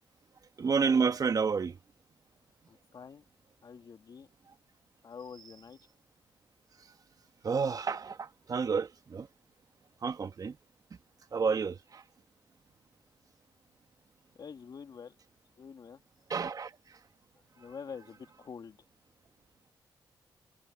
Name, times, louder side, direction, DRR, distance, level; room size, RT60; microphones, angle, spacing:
voice 1, 0.6-1.7 7.4-9.3 10.0-10.5 11.3-12.0 16.3-16.7, right 5 dB, 50° right, 1.3 m, -30 dB
voice 2, 2.7-3.2 3.6-4.3 5.0-5.8 14.4-15.2 15.6-16.0 17.6-18.8, left 6 dB, 55° left, 2.2 m, -46 dB
cardioid pair, 70°, 8 cm